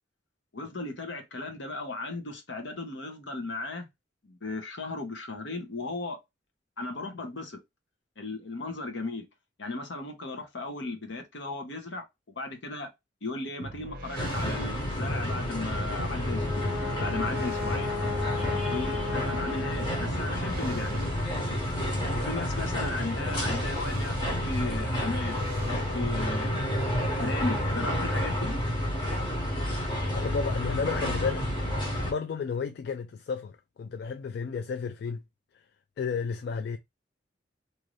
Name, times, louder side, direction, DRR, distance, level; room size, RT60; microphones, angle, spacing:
voice 1, 0.5-3.8 4.2-6.2 6.8-7.6 8.2-9.3 9.6-12.9 13.2-16.7 17.0-17.9 18.7-21.1 22.1-26.7 27.2-28.5, left 2 dB, 75° left, 1.0 m, -36 dB
sound 1, 13.6-26.4, equal, 50° right, 0.6 m, -41 dB
sound 2, 14.2-32.1, equal, 25° left, 1.2 m, -30 dB
Brass instrument, 16.1-20.5, left 6 dB, 15° right, 1.1 m, -36 dB
voice 2, 30.1-31.5 31.7-35.2 36.0-36.8, left 5 dB, 60° left, 0.3 m, -32 dB
2.7 x 2.5 x 3.0 m
head